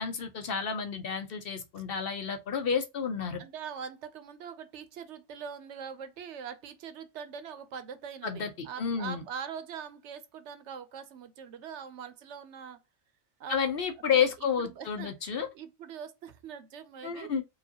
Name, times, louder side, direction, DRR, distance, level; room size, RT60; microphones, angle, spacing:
voice 1, 0.0-3.4 8.2-9.2 13.5-15.5 17.0-17.4, left 7 dB, 55° left, 0.8 m, -30 dB
voice 2, 3.4-12.8 13.4-13.6 14.1-14.3 14.6-15.1 15.5-17.3, right 7 dB, 70° right, 0.9 m, -42 dB
4.8 x 2.4 x 2.8 m
omnidirectional pair, 1.3 m